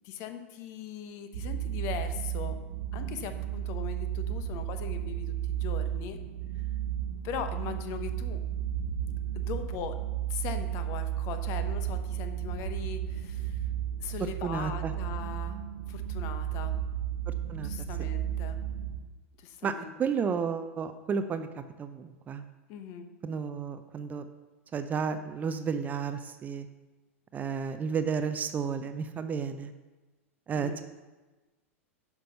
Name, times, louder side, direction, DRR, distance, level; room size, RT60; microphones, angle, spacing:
voice 1, 0.0-2.6 2.9-6.2 6.5-6.6 7.2-8.4 9.3-10.0 10.3-13.7 14.0-16.7 17.6-18.6 19.4-20.0 22.7-23.1 30.5-30.8, left 8 dB, 40° left, 8 dB, 1.1 m, -40 dB
sound 1, 1.3-19.1, right 10 dB, 60° right, 0.7 m, -33 dB
voice 2, 14.4-14.9 17.3-17.7 19.6-19.7 20.0-21.5 21.8-22.4 23.2-24.2 24.7-26.7 27.3-29.7 30.5-30.8, right 6 dB, 20° right, 10 dB, 0.6 m, -32 dB
10.0 x 6.1 x 5.6 m, 1.2 s
figure-of-eight pair, 90°, 8 cm